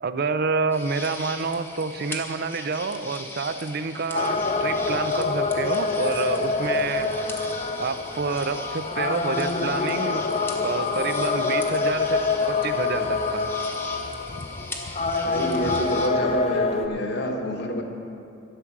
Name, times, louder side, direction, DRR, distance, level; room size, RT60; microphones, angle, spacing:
voice 1, 0.0-7.1 7.8-10.2 10.6-13.5, right 4 dB, 50° right, 10 dB, 0.5 m, -28 dB
sound 1, 0.7-16.1, left 2 dB, 10° left, 1.0 m, -40 dB
sound 2, 4.1-16.9, left 3 dB, 30° left, 0.5 m, -26 dB
voice 2, 15.2-17.8, equal, 55° left, 3 dB, 1.2 m, -28 dB
12.5 x 8.6 x 6.0 m, 2.7 s
head